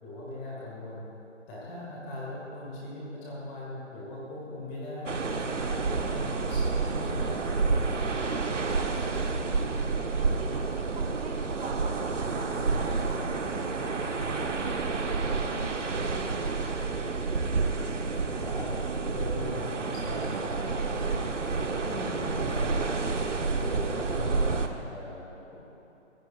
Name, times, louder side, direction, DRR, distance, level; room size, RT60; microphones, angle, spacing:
voice 1, 0.0-1.1 1.5-5.2 5.6-8.0 18.4-18.7 19.1-21.3 21.9-23.0 23.6-24.6 24.9-25.6, left 1 dB, 15° left, -6 dB, 2.3 m, -39 dB
sound 1, 5.1-24.7, right 4 dB, 80° right, 1.4 m, -29 dB
voice 2, 9.0-14.6 15.0-16.8, right 2 dB, 55° right, -2 dB, 3.4 m, -46 dB
24.0 x 16.0 x 2.6 m, 3.0 s
hypercardioid pair, 160°, 37 cm